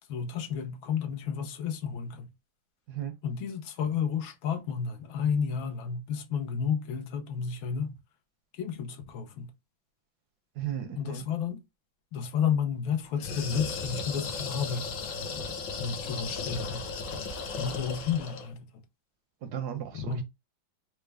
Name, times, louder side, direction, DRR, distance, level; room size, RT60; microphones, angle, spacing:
voice 1, 0.1-2.3 3.2-7.9 8.6-9.5 11.0-11.6 12.1-15.4 15.8-16.8 17.6-18.7 20.0-20.2, left 7 dB, 80° left, 1.5 m, -31 dB
voice 2, 10.6-11.2 19.4-20.2, right 10 dB, 70° right, 0.9 m, -35 dB
sound 1, 13.2-18.5, left 4 dB, 65° left, 1.4 m, -36 dB
4.5 x 2.0 x 3.2 m
omnidirectional pair, 2.2 m